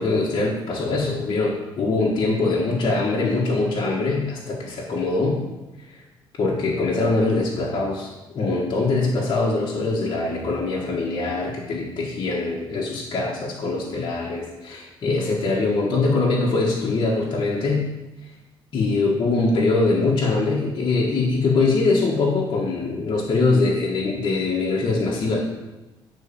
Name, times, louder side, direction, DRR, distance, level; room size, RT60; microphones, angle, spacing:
voice 1, 0.0-5.4 5.9-6.0 6.4-17.9 18.7-25.4, left 3 dB, 50° left, -4 dB, 1.9 m, -23 dB
9.4 x 4.2 x 7.2 m, 1.1 s
cardioid pair, 100°, 10 cm